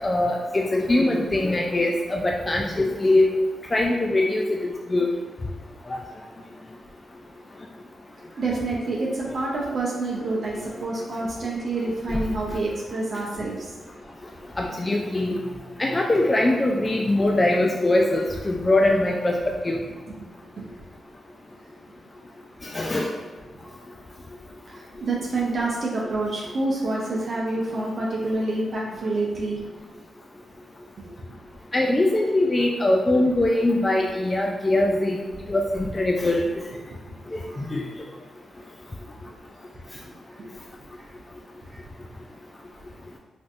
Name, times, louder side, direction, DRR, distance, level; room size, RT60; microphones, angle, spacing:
voice 1, 0.0-3.3 3.7-4.4 4.9-5.1 5.9-6.0 14.6-15.3 15.8-19.4 19.6-19.8 22.7-23.1 31.7-35.2 35.5-36.5 37.3-37.4 37.7-37.8, left 2 dB, 30° left, 0 dB, 0.3 m, -22 dB
voice 2, 8.3-13.7 15.3-15.4 20.6-20.7 24.7-29.6 31.0-31.1 37.2-37.7 40.4-40.5 41.7-41.8, right 2 dB, 60° right, -4 dB, 0.6 m, -28 dB
3.4 x 2.5 x 2.5 m, 1.3 s
cardioid pair, 60°, 0 cm